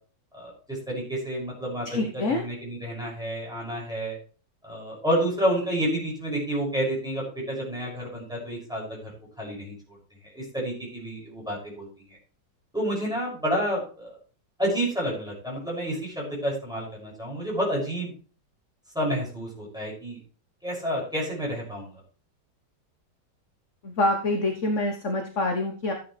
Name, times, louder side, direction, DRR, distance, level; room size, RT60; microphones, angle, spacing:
voice 1, 0.3-2.0 2.3-4.2 4.6-9.7 10.3-11.9 12.7-14.1 14.6-18.1 18.9-20.2 20.6-22.0, equal, ahead, -4 dB, 6.7 m, -29 dB
voice 2, 1.8-2.5 23.8-25.9, left 2 dB, 45° left, 3 dB, 1.5 m, -26 dB
14.0 x 9.3 x 3.3 m, 0.40 s
omnidirectional pair, 2.0 m